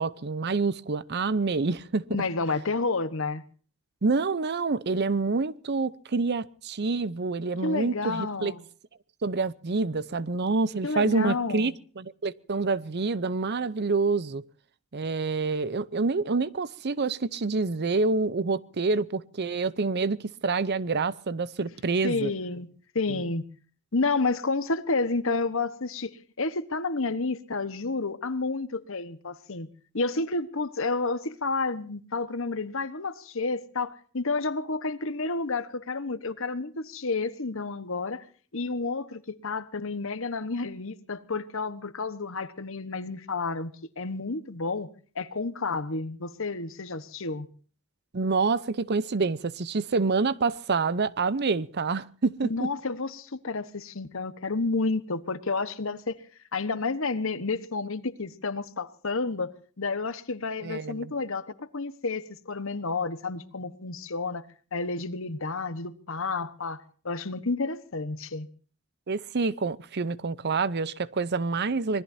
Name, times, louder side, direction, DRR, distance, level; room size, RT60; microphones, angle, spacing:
voice 1, 0.0-2.1 4.0-8.5 9.2-14.4 14.9-22.3 23.1-23.2 48.1-52.7 60.6-61.1 69.1-72.0, right 4 dB, 50° right, 0.7 m, -27 dB
voice 2, 2.1-3.4 7.6-8.6 10.8-11.7 22.0-22.7 22.9-23.4 23.9-29.7 29.9-38.2 38.5-43.7 44.0-44.9 45.1-47.5 52.4-56.2 56.5-59.5 59.8-64.4 64.7-68.5, left 3 dB, 65° left, 1.2 m, -30 dB
25.5 x 20.5 x 2.7 m
head